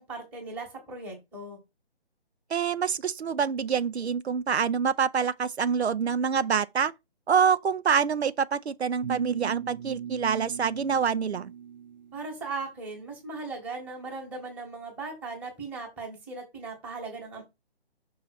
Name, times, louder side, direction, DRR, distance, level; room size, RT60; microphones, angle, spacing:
voice 1, 0.0-1.6 12.1-17.4, right 3 dB, 5° right, 1.3 m, -38 dB
voice 2, 2.5-6.9 7.3-11.5, right 6 dB, 80° right, 0.7 m, -26 dB
sound 1, 9.0-12.2, right 9 dB, 45° right, 0.9 m, -37 dB
5.6 x 3.7 x 5.8 m
hypercardioid pair, 160°, 32 cm